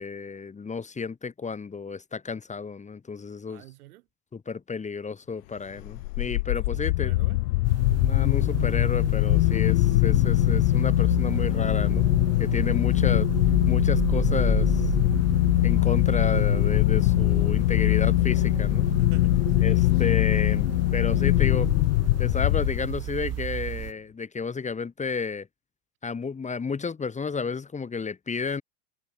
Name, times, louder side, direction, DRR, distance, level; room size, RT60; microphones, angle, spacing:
voice 1, 0.0-3.6 4.3-7.1 8.0-12.1 12.4-13.3 13.7-14.9 15.6-19.0 19.6-21.7 22.2-25.5 26.0-28.6, left 5 dB, 15° left, 2.0 m, -32 dB
voice 2, 3.5-4.1 6.7-7.4 12.9-13.3 17.9-18.1 19.0-20.1, right 18 dB, 75° right, 3.0 m, -48 dB
sound 1, 5.8-23.2, left 20 dB, 75° left, 0.7 m, -22 dB
sound 2, 7.6-23.9, right 13 dB, 35° right, 1.5 m, -33 dB
Organ, 11.4-21.6, right 40 dB or more, 60° right, 3.2 m, -49 dB
hypercardioid pair, 110°, 45 cm